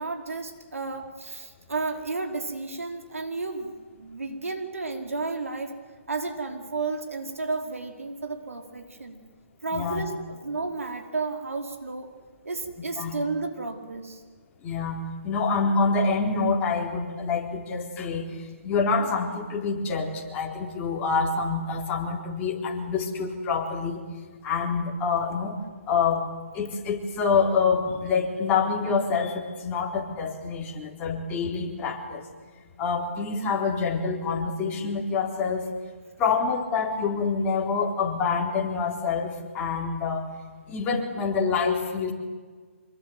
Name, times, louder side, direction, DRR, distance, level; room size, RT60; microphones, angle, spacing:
voice 1, 0.0-5.7 6.1-9.2 9.6-12.1 12.4-14.2, right 3 dB, 85° right, 4 dB, 4.9 m, -32 dB
voice 2, 9.7-10.0 13.0-13.1 14.6-24.0 24.4-25.6 25.9-26.2 26.5-32.2 32.8-35.7 36.2-40.3 40.7-42.1, left 5 dB, 20° left, 0 dB, 4.1 m, -26 dB
26.0 x 22.5 x 9.5 m, 1.5 s
hypercardioid pair, 150°, 7 cm